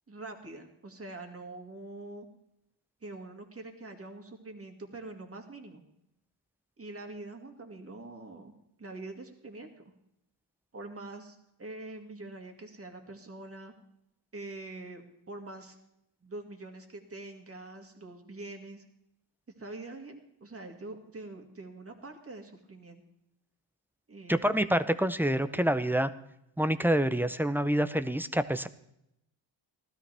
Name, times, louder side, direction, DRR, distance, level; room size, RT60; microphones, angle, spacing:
voice 1, 0.1-2.3 3.0-5.8 6.8-8.5 8.8-9.7 10.7-13.7 14.3-15.8 16.2-18.8 19.6-23.0 24.1-24.7, right 2 dB, 30° right, 4 dB, 2.2 m, -44 dB
voice 2, 24.3-26.1 26.6-28.7, right 1 dB, 5° right, 11 dB, 0.6 m, -27 dB
16.5 x 13.0 x 3.5 m, 0.80 s
cardioid pair, 85°, 47 cm